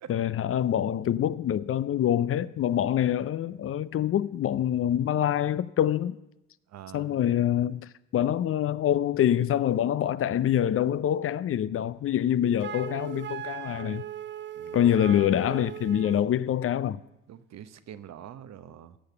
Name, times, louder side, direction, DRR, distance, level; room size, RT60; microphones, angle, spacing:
voice 1, 0.1-6.2 6.9-14.0 14.7-17.0, left 10 dB, 45° left, 0.5 m, -25 dB
voice 2, 6.7-7.2 14.5-15.1 17.3-19.0, right 10 dB, 55° right, 0.9 m, -45 dB
Wind instrument woodwind instrument, 12.6-16.3, right 10 dB, 35° right, 0.5 m, -38 dB
15.5 x 6.6 x 6.8 m
supercardioid pair, 60°, 31 cm